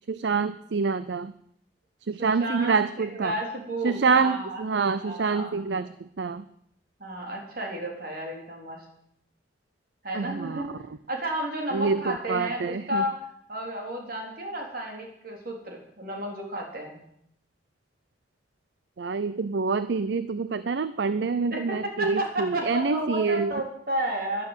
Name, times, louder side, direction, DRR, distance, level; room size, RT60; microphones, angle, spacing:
voice 1, 0.1-1.3 2.1-3.3 3.8-6.4 10.1-10.6 11.7-13.0 19.0-23.5, right 4 dB, 70° right, 14 dB, 0.5 m, -26 dB
voice 2, 2.2-4.6 5.0-5.9 7.0-8.8 10.0-10.7 11.1-13.2 13.5-17.0 21.5-24.5, right 1 dB, 50° right, 1 dB, 3.7 m, -32 dB
11.5 x 11.5 x 8.1 m, 0.73 s
head